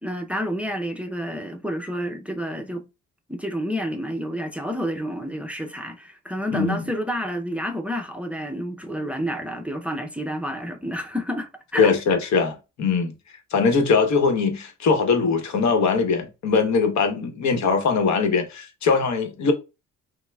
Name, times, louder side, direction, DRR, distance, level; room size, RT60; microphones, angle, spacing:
voice 1, 0.0-2.8 3.3-11.9, equal, 5° right, 0.5 m, -29 dB
voice 2, 11.8-13.1 13.5-19.5, left 5 dB, 65° left, 1.0 m, -21 dB
5.6 x 2.1 x 2.3 m
cardioid pair, 90°, 30 cm